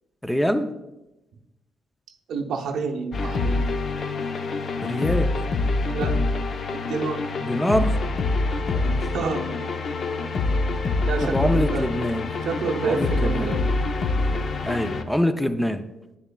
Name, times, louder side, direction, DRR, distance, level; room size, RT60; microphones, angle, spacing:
voice 1, 0.2-0.7 4.8-5.4 7.4-8.0 8.6-9.1 11.2-12.3 12.8-13.6 14.6-15.9, equal, 5° left, 9 dB, 0.4 m, -25 dB
voice 2, 2.3-3.7 5.9-6.2 6.7-7.3 9.1-9.6 11.1-11.9 12.4-13.6, right 4 dB, 75° right, 3 dB, 0.7 m, -28 dB
sound 1, 3.1-15.0, left 3 dB, 50° left, 0.6 m, -25 dB
9.6 x 6.8 x 2.3 m, 0.98 s
cardioid pair, 90°, 0 cm